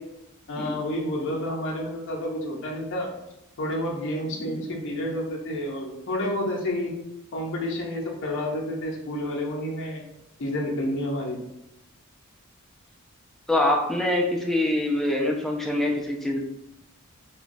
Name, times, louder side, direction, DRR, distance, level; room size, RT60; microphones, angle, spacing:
voice 1, 0.5-3.1 3.6-6.9 7.3-10.0 10.4-11.4, left 1 dB, 60° left, -1 dB, 0.6 m, -29 dB
voice 2, 13.5-16.4, left 1 dB, ahead, -1 dB, 0.4 m, -24 dB
3.0 x 2.2 x 2.5 m, 0.89 s
head